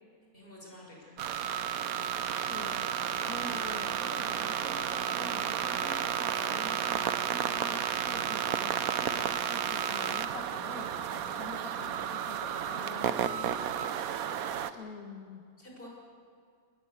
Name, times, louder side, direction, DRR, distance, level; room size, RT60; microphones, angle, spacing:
voice 1, 0.3-1.2 14.7-14.8 15.6-15.9, left 1 dB, 40° left, -2 dB, 6.4 m, -50 dB
sound 1, 1.2-14.7, right 9 dB, 80° right, 1.3 m, -32 dB
voice 2, 2.5-2.9 3.3-13.9 14.7-15.5, left 4 dB, 85° left, 7 dB, 2.0 m, -46 dB
21.5 x 21.0 x 8.3 m, 2.3 s
omnidirectional pair, 1.5 m